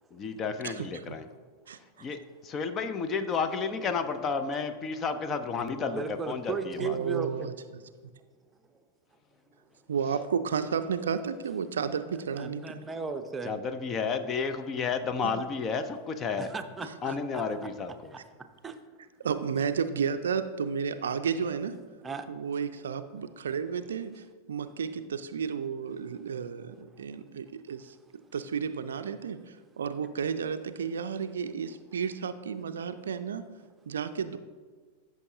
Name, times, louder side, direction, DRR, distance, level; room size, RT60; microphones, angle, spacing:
voice 1, 0.1-1.3 2.0-7.0 13.4-16.5 17.0-18.1, left 5 dB, 25° left, 10 dB, 0.6 m, -32 dB
voice 2, 0.6-1.2 1.7-1.8 6.8-7.5 9.9-12.8 15.2-15.3 19.2-21.8 22.3-27.9 28.3-33.5 33.9-34.4, right 6 dB, 65° right, 11 dB, 0.4 m, -32 dB
voice 3, 5.5-7.5 12.4-13.5 16.4-17.4 17.9-18.2 18.6-18.7 22.0-22.3, right 5 dB, 15° right, 7 dB, 0.7 m, -36 dB
13.5 x 6.4 x 2.7 m, 1.5 s
figure-of-eight pair, 90°, 0 cm